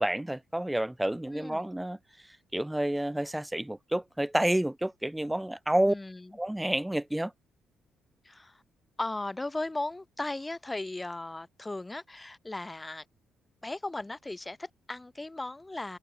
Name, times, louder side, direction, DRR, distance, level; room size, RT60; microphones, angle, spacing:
voice 1, 0.0-2.0 2.2-5.9 6.4-7.3, right 1 dB, 5° right, 0.6 m, -29 dB
voice 2, 1.3-1.7 5.9-6.3 8.2-8.6 9.0-13.0 13.6-16.0, left 2 dB, 15° left, 6.4 m, -37 dB
cardioid pair, 90°, 0 cm